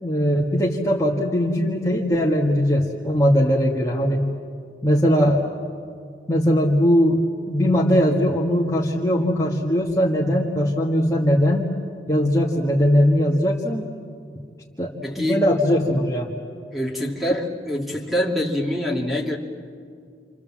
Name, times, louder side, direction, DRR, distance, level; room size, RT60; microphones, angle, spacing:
voice 1, 0.0-4.3 4.8-5.4 6.3-7.2 7.5-11.7 12.1-13.9 14.8-16.3, equal, 15° left, -3 dB, 1.8 m, -20 dB
voice 2, 15.0-15.4 16.7-19.4, equal, ahead, -1 dB, 2.4 m, -25 dB
29.0 x 27.5 x 7.4 m, 2.3 s
head